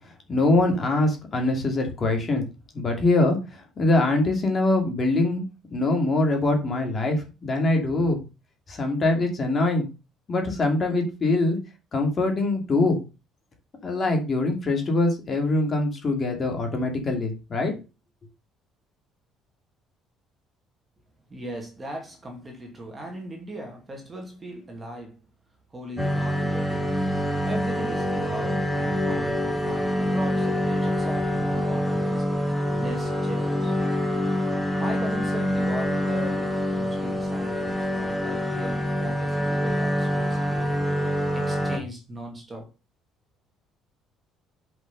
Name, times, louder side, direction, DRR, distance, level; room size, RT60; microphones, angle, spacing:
voice 1, 0.3-2.4 2.7-3.4 3.8-5.4 5.7-8.2 8.7-9.9 10.3-11.6 11.9-13.0 13.8-17.8, left 2 dB, 30° left, 2.8 m, -23 dB
voice 2, 21.3-25.2 25.7-27.0 27.5-32.3 32.7-33.8 34.8-42.7, right 1 dB, 15° right, 2.5 m, -38 dB
sound 1, 26.0-41.8, left 1 dB, ahead, 1.9 m, -26 dB
8.0 x 5.7 x 5.5 m
cardioid pair, 160°, 0 cm